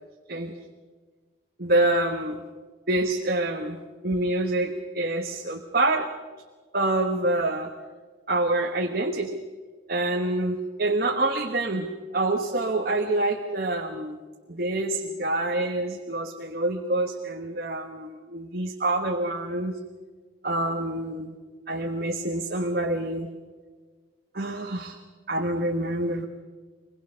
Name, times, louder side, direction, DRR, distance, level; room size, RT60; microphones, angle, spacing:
voice 1, 1.6-2.4 2.9-3.8 4.0-6.1 6.7-7.7 8.3-9.4 9.9-14.2 14.5-19.7 20.4-21.3 21.7-23.3 24.3-25.0 25.3-26.3, right 2 dB, 50° right, 3 dB, 1.3 m, -26 dB
24.0 x 21.5 x 6.4 m, 1.4 s
head